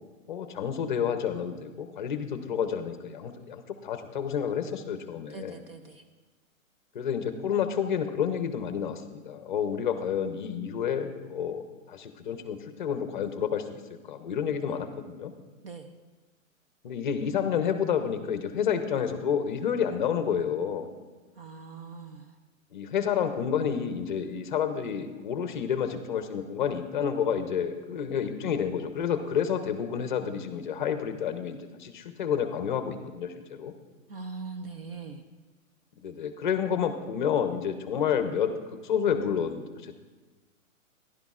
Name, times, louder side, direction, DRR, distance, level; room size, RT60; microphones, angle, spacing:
voice 1, 0.3-5.6 6.9-15.3 16.8-20.9 22.7-33.7 36.0-39.9, left 7 dB, 35° left, 8 dB, 0.6 m, -30 dB
voice 2, 5.3-6.0 15.6-15.9 21.4-22.3 34.1-35.2, right 4 dB, 45° right, 7 dB, 0.5 m, -41 dB
15.0 x 11.0 x 2.4 m, 1.3 s
hypercardioid pair, 170°, 41 cm